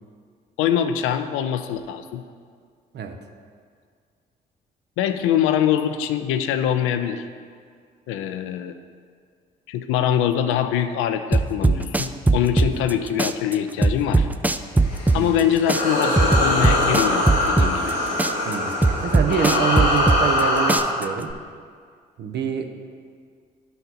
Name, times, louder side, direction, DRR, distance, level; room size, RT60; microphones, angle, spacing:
voice 1, 0.6-2.2 5.0-7.3 8.1-8.7 9.7-14.3 15.1-17.9, left 9 dB, 70° left, 9 dB, 0.5 m, -23 dB
sound 1, 11.3-12.9 13.2-15.4 15.7-17.9 18.2-20.4 20.7-21.3, right 3 dB, 10° right, 0.3 m, -19 dB
sound 2, 14.8-20.8, left 1 dB, 85° left, 1.4 m, -22 dB
voice 2, 18.5-21.3 22.2-22.8, right 6 dB, 55° right, 5 dB, 0.8 m, -26 dB
11.0 x 4.1 x 4.1 m, 2.1 s
hypercardioid pair, 50°, 21 cm